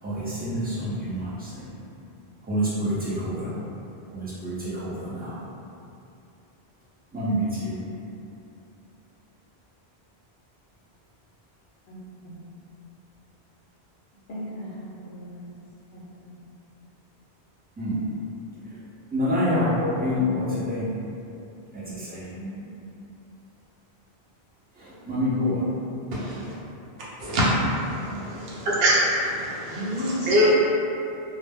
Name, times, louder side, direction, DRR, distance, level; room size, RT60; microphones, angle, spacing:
voice 1, 0.0-1.7 2.4-3.5 4.1-5.4 7.1-7.8 17.8-18.1 18.6-18.8 19.1-20.9 21.7-22.3 24.7-25.7, left 1 dB, 15° right, -10 dB, 0.4 m, -27 dB
voice 2, 11.9-12.4 14.3-15.5 15.9-16.3 20.1-20.5 22.3-22.6 28.1-28.5 29.7-30.5, equal, 60° left, -6 dB, 0.7 m, -35 dB
voice 3, 26.1-26.5 27.2-28.1 28.6-30.5, equal, 70° right, -8 dB, 0.9 m, -23 dB
2.1 x 2.1 x 3.4 m, 2.7 s
omnidirectional pair, 1.1 m